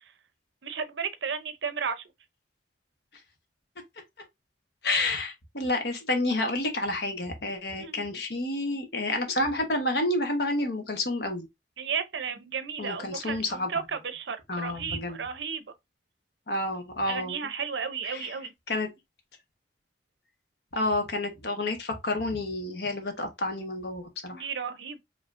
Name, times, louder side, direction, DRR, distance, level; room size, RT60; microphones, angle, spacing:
voice 1, 0.6-2.0 7.8-8.0 11.8-15.6 17.1-18.5 24.3-25.0, right 6 dB, 75° right, 0.7 m, -33 dB
voice 2, 4.8-11.5 12.8-13.7 14.5-15.2 16.5-17.4 18.0-18.3 18.7-18.9 20.7-24.4, left 2 dB, 60° left, 1.2 m, -29 dB
5.2 x 3.0 x 2.5 m
head